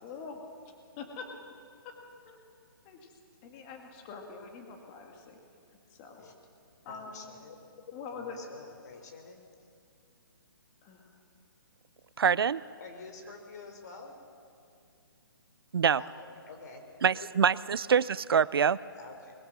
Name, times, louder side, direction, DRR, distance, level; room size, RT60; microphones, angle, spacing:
voice 1, 0.0-0.4 1.0-1.3 1.8-1.9 2.3-2.4 2.8-3.1 3.4-5.4 5.9-6.2 6.9-7.3 7.9-8.4 10.8-11.1, left 5 dB, 20° left, 3 dB, 2.0 m, -44 dB
voice 2, 6.9-7.6 8.1-9.5 12.8-14.1 15.9-16.8 17.1-17.3 19.0-19.3, left 4 dB, 45° left, 4 dB, 3.7 m, -48 dB
voice 3, 12.2-12.6 15.7-16.0 17.0-18.8, right 7 dB, 80° right, 20 dB, 0.5 m, -25 dB
22.0 x 21.0 x 6.1 m, 2.4 s
hypercardioid pair, 160°, 12 cm